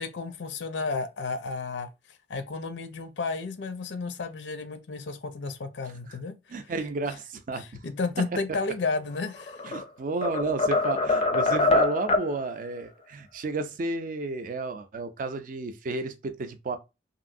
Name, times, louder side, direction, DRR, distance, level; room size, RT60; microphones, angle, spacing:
voice 1, 0.0-1.9 2.3-6.4 7.6-9.6, left 4 dB, 90° left, 0.5 m, -32 dB
voice 2, 6.5-7.7 9.6-16.8, right 3 dB, 50° right, 0.4 m, -32 dB
sound 1, 9.3-9.8 10.2-12.3, left 3 dB, 35° left, 0.4 m, -24 dB
3.0 x 2.6 x 2.5 m
head